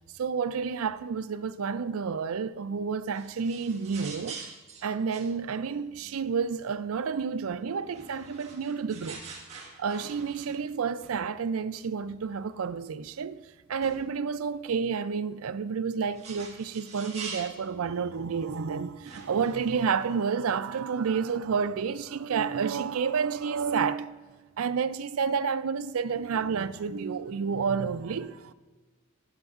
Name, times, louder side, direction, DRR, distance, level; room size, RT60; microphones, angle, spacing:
voice 1, 0.1-4.5 4.8-9.3 9.8-24.2 24.6-28.5, right 6 dB, 80° right, 0.4 m, -30 dB
sound 1, 3.1-6.7 7.8-10.7 11.0-11.2 11.7-11.8 12.5-12.6 13.0-13.1 13.8-14.0 15.7-17.7 18.5-18.6 19.0-19.7, right 4 dB, 30° right, 1.3 m, -45 dB
13.0 x 9.6 x 2.4 m
head